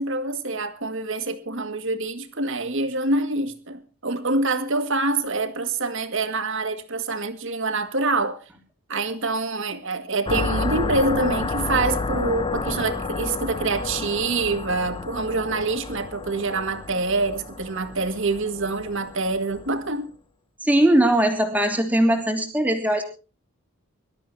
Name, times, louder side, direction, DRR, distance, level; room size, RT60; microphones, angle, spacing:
voice 1, 0.0-8.4 8.9-20.1, right 3 dB, 60° right, 2.1 m, -26 dB
sound 1, 10.3-19.8, left 3 dB, 25° left, 0.9 m, -30 dB
voice 2, 20.6-23.0, right 1 dB, 10° right, 3.2 m, -20 dB
24.5 x 13.0 x 2.8 m
head